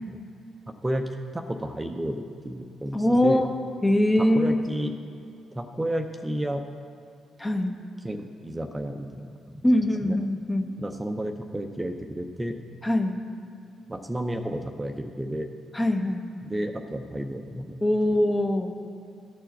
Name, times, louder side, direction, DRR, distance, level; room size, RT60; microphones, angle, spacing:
voice 1, 0.7-3.4 4.2-4.9 5.5-6.6 8.0-9.6 10.0-10.2 10.8-12.6 13.9-15.5 16.4-17.8, right 1 dB, 15° right, 5 dB, 0.6 m, -32 dB
voice 2, 2.9-3.5 3.8-4.6 7.4-7.7 9.6-10.7 12.8-13.2 15.7-16.2 17.8-18.7, left 1 dB, 15° left, 4 dB, 0.9 m, -22 dB
12.5 x 4.5 x 7.3 m, 2.5 s
hypercardioid pair, 45°, 0 cm